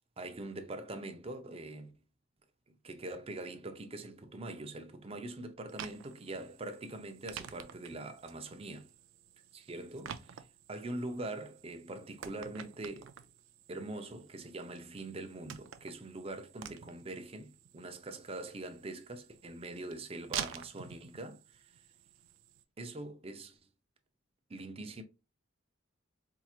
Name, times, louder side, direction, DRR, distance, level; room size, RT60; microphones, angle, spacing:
voice 1, 0.2-1.9 2.8-8.9 9.5-13.1 13.7-21.6 22.8-23.6 24.5-25.0, right 2 dB, 30° right, 0.6 m, -43 dB
sound 1, 5.7-22.6, right 9 dB, 75° right, 0.4 m, -49 dB
4.6 x 2.9 x 2.3 m
head